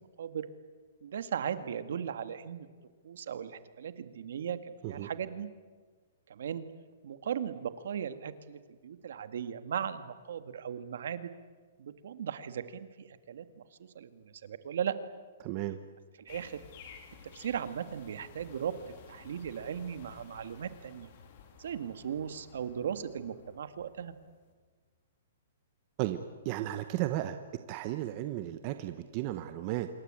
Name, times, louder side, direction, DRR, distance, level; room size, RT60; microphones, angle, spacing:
voice 1, 1.0-2.7 3.0-5.5 6.3-6.7 7.0-11.3 11.8-15.0 16.3-16.6 17.3-21.1 21.6-24.1, right 8 dB, 60° right, 11 dB, 1.9 m, -37 dB
voice 2, 15.4-15.8 26.0-26.2 26.4-27.4 27.7-29.9, right 14 dB, 25° right, 9 dB, 0.9 m, -34 dB
sound 1, 16.3-24.5, left 6 dB, 35° left, 3.0 m, -54 dB
26.5 x 23.5 x 9.0 m, 1.4 s
hypercardioid pair, 180°, 0 cm